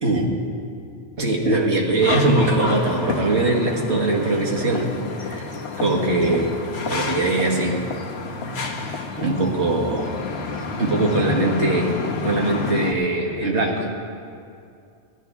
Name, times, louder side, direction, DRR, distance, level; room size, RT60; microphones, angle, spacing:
voice 1, 0.0-0.3 1.2-4.9 5.2-5.5 5.8-6.5 6.9-7.8 8.5-8.8 9.2-10.2 10.8-11.9 12.2-13.9, right 2 dB, 70° right, -1 dB, 1.9 m, -21 dB
sound 1, 2.0-12.9, left 4 dB, 65° left, 1.2 m, -29 dB
17.5 x 12.5 x 3.5 m, 2.4 s
omnidirectional pair, 1.2 m